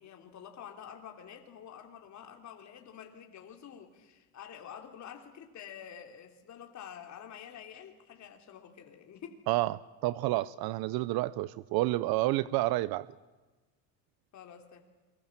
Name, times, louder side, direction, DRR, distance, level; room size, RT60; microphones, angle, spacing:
voice 1, 0.0-9.4 14.3-14.8, left 8 dB, 40° left, 3.4 m, -48 dB
voice 2, 9.5-13.1, right 18 dB, 55° right, 0.8 m, -29 dB
28.5 x 23.5 x 7.4 m
cardioid pair, 130°, 44 cm